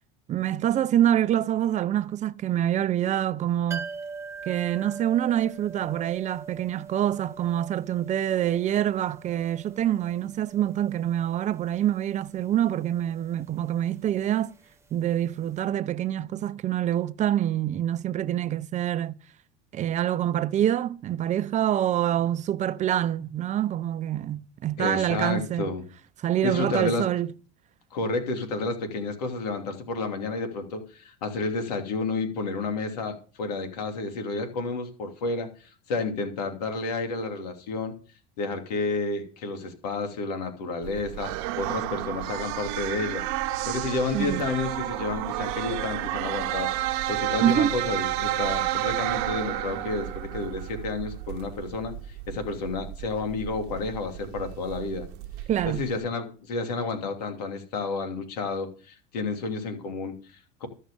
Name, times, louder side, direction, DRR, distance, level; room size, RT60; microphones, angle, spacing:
voice 1, 0.3-3.9 4.5-14.5 14.9-19.2 19.7-25.7 26.2-27.3 44.1-44.5 47.4-47.8 55.5-55.9, right 11 dB, 40° right, 0.7 m, -26 dB
sound 1, 3.7-15.3 15.6-15.7, right 4 dB, 15° right, 1.5 m, -43 dB
voice 2, 24.8-25.8 26.4-27.0 27.9-38.0 38.4-41.3 41.6-43.2 43.7-55.1 55.6-60.7, left 3 dB, 90° left, 2.8 m, -31 dB
sound 2, 40.8-56.0, right 14 dB, 75° right, 0.9 m, -31 dB
14.0 x 6.5 x 6.8 m
supercardioid pair, 100°, 19 cm